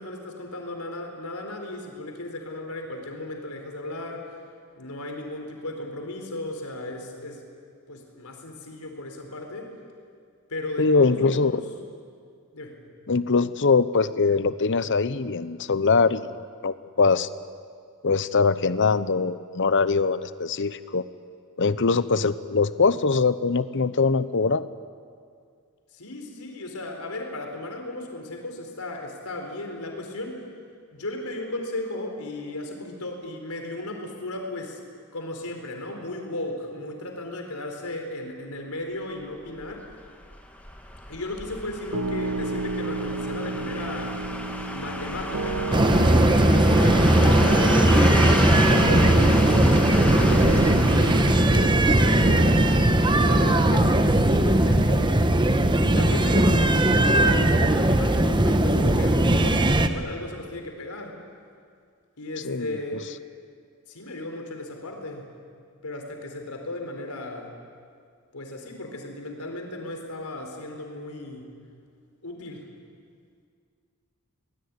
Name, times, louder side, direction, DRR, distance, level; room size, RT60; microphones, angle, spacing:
voice 1, 0.0-4.3 4.8-7.4 7.9-9.7 10.5-11.6 12.5-12.8 25.9-30.4 30.9-34.8 35.1-39.9 41.1-44.3 44.7-45.7 46.4-52.7 53.1-55.4 55.8-61.2 62.2-63.2 63.9-65.3 65.8-67.5 68.3-71.5 72.2-72.6, left 1 dB, 75° left, 3 dB, 4.4 m, -35 dB
voice 2, 10.8-11.6 13.1-17.3 18.0-21.1 21.6-24.7 62.4-62.8, left 4 dB, 55° left, 14 dB, 0.9 m, -22 dB
sound 1, 39.6-54.5 54.8-54.9, left 1 dB, 5° left, 2.2 m, -32 dB
Piano, 41.9-55.3, right 3 dB, 80° right, 1.3 m, -33 dB
sound 2, 45.7-59.9, right 1 dB, 20° right, 1.1 m, -19 dB
24.0 x 20.0 x 9.7 m, 2.2 s
head